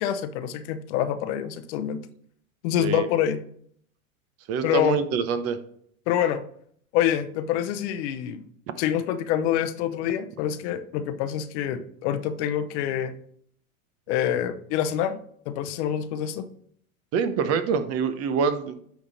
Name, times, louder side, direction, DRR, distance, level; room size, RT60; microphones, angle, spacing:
voice 1, 0.0-2.0 2.6-3.4 4.6-5.0 6.1-6.4 6.9-8.4 8.8-13.1 14.1-15.2 15.5-16.5, left 10 dB, 50° left, 10 dB, 0.8 m, -26 dB
voice 2, 4.5-5.6 17.1-18.8, right 6 dB, 35° right, 10 dB, 0.8 m, -25 dB
9.1 x 3.6 x 4.1 m, 0.62 s
hypercardioid pair, 110°, 43 cm